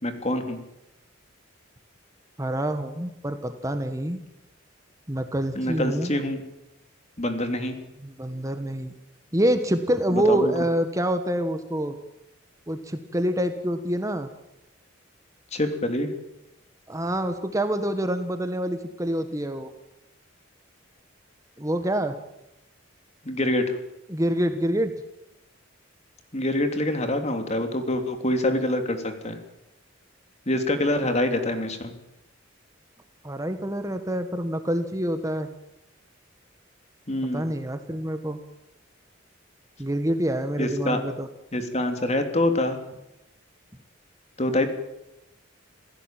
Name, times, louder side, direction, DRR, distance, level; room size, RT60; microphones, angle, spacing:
voice 1, 0.0-0.6 5.5-6.4 7.2-7.8 10.1-10.5 15.5-16.1 23.2-23.8 26.3-29.4 30.5-31.9 37.1-37.4 40.6-41.0 41.5-42.8 44.4-44.7, left 1 dB, 35° left, 7 dB, 3.1 m, -25 dB
voice 2, 2.4-4.2 5.1-6.1 8.0-8.9 9.3-12.0 12.7-14.3 16.9-19.7 21.6-22.2 24.1-24.9 33.2-35.5 37.3-38.4 39.8-41.3, right 1 dB, 15° right, 8 dB, 1.4 m, -26 dB
27.5 x 16.0 x 9.1 m, 0.89 s
head